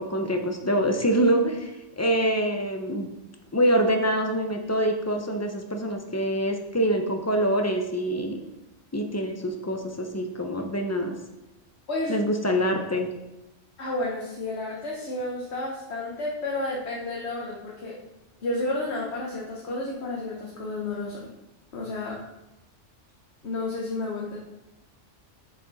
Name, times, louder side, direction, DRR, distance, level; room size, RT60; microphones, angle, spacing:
voice 1, 0.0-1.7 2.0-3.1 3.5-8.4 8.9-11.1 12.1-13.1, right 1 dB, 20° left, 3 dB, 0.5 m, -25 dB
voice 2, 11.9-12.2 13.8-18.0 18.4-21.3 21.7-22.2 23.4-24.4, left 2 dB, 60° left, -3 dB, 1.3 m, -31 dB
6.5 x 6.3 x 4.1 m, 0.94 s
omnidirectional pair, 1.3 m